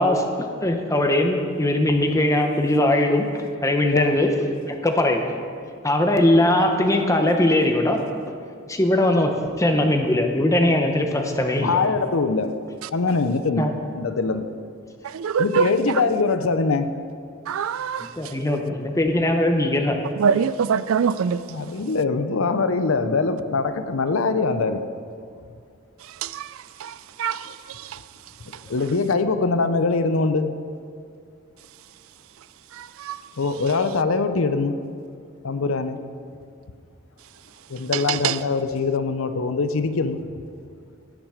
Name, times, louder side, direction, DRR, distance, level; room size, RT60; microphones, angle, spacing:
voice 1, 0.0-4.3 4.6-5.3 5.8-8.4 8.7-9.3 9.6-11.8 13.6-13.7 18.0-20.0, left 1 dB, 15° left, 0.9 m, -20 dB
voice 2, 11.6-12.6 12.9-14.5 15.4-17.0 21.5-24.8 28.7-30.6 33.4-34.8 35.4-36.0 37.7-40.2, left 4 dB, 80° left, 0.6 m, -23 dB
voice 3, 15.1-15.7 17.5-18.1 20.2-21.4 26.2-26.5 26.8-26.9 27.2-27.4 33.0-33.2 37.9-38.4, right 7 dB, 85° right, 0.4 m, -23 dB
16.5 x 6.0 x 5.0 m
head